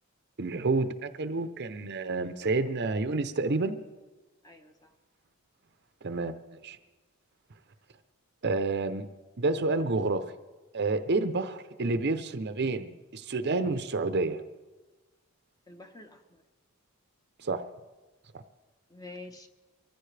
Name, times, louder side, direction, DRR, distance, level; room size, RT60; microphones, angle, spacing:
voice 1, 0.4-3.8 6.0-6.8 8.4-9.1 9.4-10.3 10.7-14.4 17.4-17.6 18.3-18.4, right 3 dB, 50° right, 10 dB, 0.7 m, -29 dB
voice 2, 4.4-4.9 15.7-16.4 18.9-19.5, left 2 dB, 15° left, 5 dB, 0.9 m, -47 dB
23.5 x 15.0 x 3.3 m, 1.2 s
head